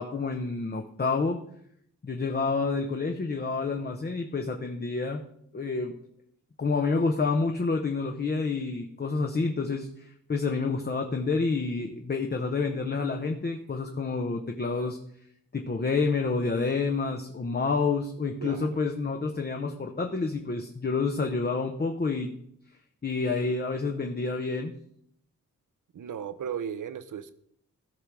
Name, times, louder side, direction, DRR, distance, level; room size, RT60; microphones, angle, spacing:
voice 1, 0.0-1.4 2.0-5.2 5.5-5.9 6.6-15.0 15.5-22.3 23.0-24.7, left 4 dB, 30° left, 3 dB, 0.8 m, -28 dB
voice 2, 25.9-27.3, right 8 dB, 70° right, 13 dB, 0.8 m, -35 dB
15.0 x 5.7 x 4.8 m, 0.69 s
wide cardioid pair, 110°, 32 cm